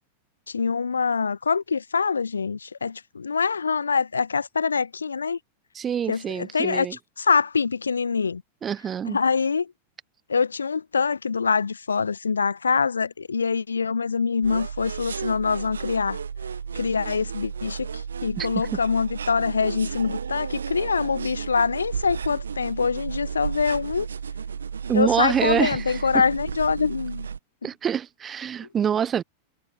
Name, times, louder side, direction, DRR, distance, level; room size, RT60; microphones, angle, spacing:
voice 1, 0.5-5.4 6.1-8.4 9.1-9.7 10.3-16.2 16.7-24.1 24.9-27.3, left 5 dB, 75° left, 0.4 m, -24 dB
voice 2, 5.7-7.0 8.6-9.2 18.4-18.5 24.9-26.0 27.6-29.2, right 8 dB, 25° right, 0.8 m, -25 dB
sound 1, 14.4-27.4, right 6 dB, 70° right, 1.2 m, -33 dB
figure-of-eight pair, 90°, 0 cm